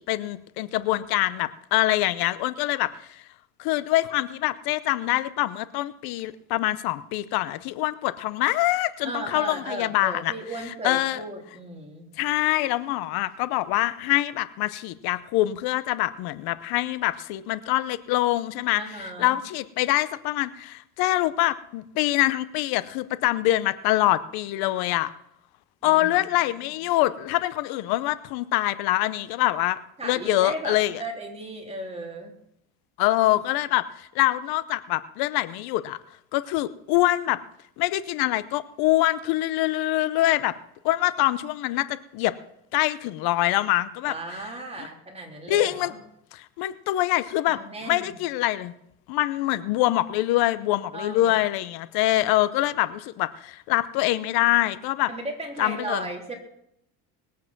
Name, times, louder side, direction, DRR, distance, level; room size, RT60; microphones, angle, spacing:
voice 1, 0.0-3.2 3.6-10.3 10.8-11.2 12.2-25.1 25.8-29.8 30.0-31.0 33.0-36.0 36.3-37.4 37.8-40.5 40.8-42.3 42.7-44.1 45.5-45.9 46.3-47.6 47.9-48.7 49.1-55.1 55.6-56.1, left 16 dB, 85° left, 15 dB, 0.8 m, -24 dB
voice 2, 9.0-12.1 18.7-19.4 25.8-26.1 30.0-32.3 44.1-46.0 47.5-48.1 50.9-51.4 55.1-56.4, right 2 dB, 15° right, 0 dB, 3.6 m, -35 dB
20.5 x 8.6 x 6.0 m, 0.78 s
cardioid pair, 120°, 36 cm